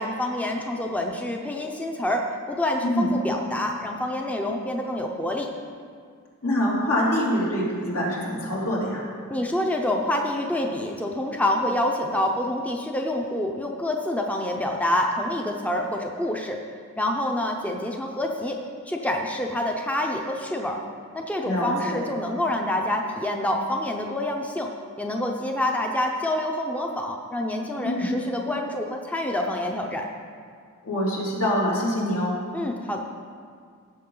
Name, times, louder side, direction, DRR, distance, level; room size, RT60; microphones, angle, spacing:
voice 1, 0.0-5.5 9.3-16.6 17.0-18.6 18.9-20.8 21.1-24.7 25.0-30.0 32.5-33.0, left 1 dB, 5° left, 2 dB, 0.6 m, -27 dB
voice 2, 2.8-3.1 6.4-9.1 21.4-22.0 27.8-28.1 30.8-32.4, equal, 80° left, -5 dB, 3.0 m, -25 dB
16.0 x 7.0 x 3.9 m, 2.1 s
head